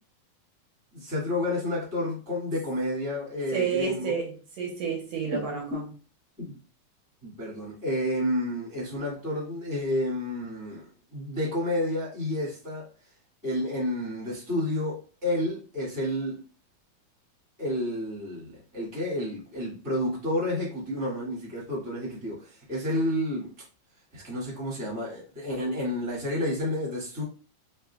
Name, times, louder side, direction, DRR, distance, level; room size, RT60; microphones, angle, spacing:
voice 1, 0.9-4.1 5.3-5.4 5.7-5.8 6.4-6.6 7.2-12.9 13.4-16.4 17.6-23.5 24.1-27.2, left 1 dB, 10° right, 0.9 m, -30 dB
voice 2, 3.5-5.9, right 5 dB, 70° right, 1.7 m, -30 dB
5.4 x 2.9 x 2.3 m
omnidirectional pair, 3.9 m